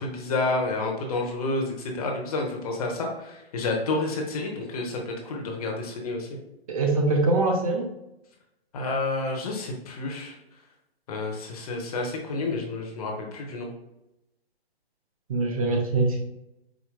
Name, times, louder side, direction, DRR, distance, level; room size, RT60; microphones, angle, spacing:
voice 1, 0.0-6.3 8.7-10.3 11.1-13.7, left 2 dB, 35° left, 1 dB, 1.1 m, -29 dB
voice 2, 6.7-7.9 15.3-16.2, right 2 dB, 35° right, 2 dB, 0.6 m, -23 dB
5.1 x 4.3 x 2.2 m, 0.89 s
hypercardioid pair, 145°, 32 cm